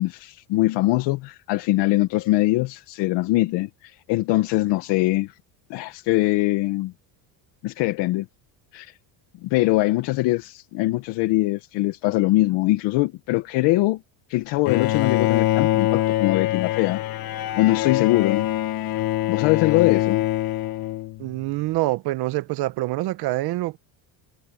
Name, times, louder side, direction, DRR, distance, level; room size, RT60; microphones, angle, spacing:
voice 1, 0.0-5.4 5.7-6.9 7.6-8.3 8.7-9.0 9.4-14.0 14.3-17.0 17.5-18.5 19.3-20.2, left 19 dB, 70° left, 1.1 m, -22 dB
Bowed string instrument, 14.7-21.4, left 15 dB, 55° left, 1.7 m, -24 dB
voice 2, 21.2-23.8, right 18 dB, 60° right, 1.1 m, -26 dB
cardioid pair, 150°, 43 cm